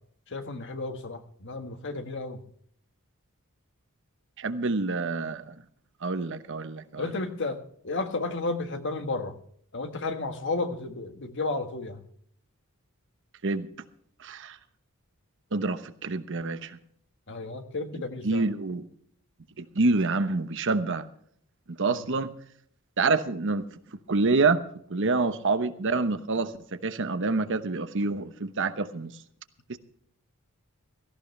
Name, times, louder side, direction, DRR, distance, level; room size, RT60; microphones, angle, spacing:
voice 1, 0.3-2.4 7.0-7.6 7.8-9.3 9.7-12.0 17.3-18.4 21.8-22.0 25.0-25.2, left 3 dB, 55° left, 7 dB, 1.6 m, -32 dB
voice 2, 4.4-5.5 6.0-7.1 13.4-13.7 14.2-14.6 15.5-16.8 18.2-18.8 19.6-21.1 21.8-22.3 23.0-23.6 24.1-24.6 24.9-26.5 26.8-29.1 29.7-29.8, right 3 dB, 60° right, 11 dB, 1.0 m, -27 dB
17.0 x 15.0 x 3.3 m, 0.63 s
head